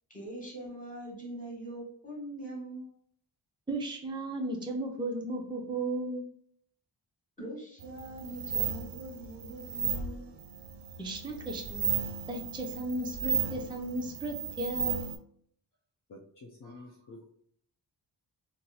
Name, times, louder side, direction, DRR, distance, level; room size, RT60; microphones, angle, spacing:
voice 1, 0.1-2.9 7.4-10.3, right 1 dB, 15° left, -3 dB, 1.5 m, -42 dB
voice 2, 3.7-6.2 11.0-11.8 12.3-15.1, right 2 dB, 10° right, 0 dB, 0.5 m, -35 dB
sound 1, 7.8-15.2, right 7 dB, 70° right, 0.5 m, -35 dB
voice 3, 16.1-17.3, left 2 dB, 45° left, -1 dB, 0.5 m, -49 dB
2.8 x 2.0 x 3.8 m, 0.63 s
wide cardioid pair, 115°, 44 cm